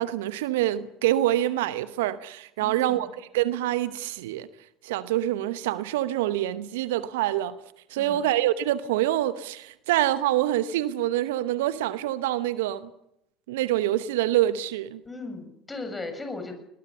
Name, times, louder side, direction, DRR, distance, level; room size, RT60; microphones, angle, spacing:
voice 1, 0.0-3.1 3.3-4.5 4.8-7.5 7.9-12.9 13.5-15.0, right 13 dB, 70° right, 0.9 m, -26 dB
voice 2, 2.6-3.1 8.0-8.3 15.0-16.5, left 3 dB, 15° left, 7.2 m, -37 dB
22.0 x 21.0 x 6.9 m
figure-of-eight pair, 65°, 0 cm